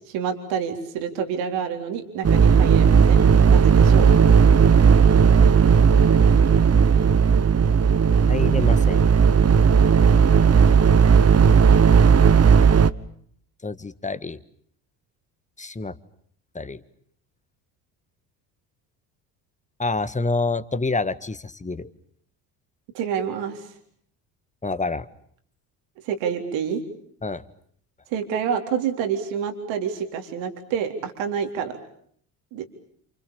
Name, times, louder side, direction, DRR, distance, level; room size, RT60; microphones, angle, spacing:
voice 1, 0.1-4.1 22.9-23.7 26.0-26.8 28.1-31.8 32.5-32.7, right 7 dB, 70° right, 5 dB, 3.9 m, -28 dB
sound 1, 2.2-12.9, right 6 dB, 30° right, 1.2 m, -15 dB
voice 2, 8.3-9.0 13.6-14.4 15.6-16.0 16.5-16.8 19.8-21.9 24.6-25.1 27.2-27.4, left 3 dB, 15° left, 12 dB, 1.8 m, -27 dB
29.0 x 28.0 x 7.1 m, 0.64 s
hypercardioid pair, 65°, 47 cm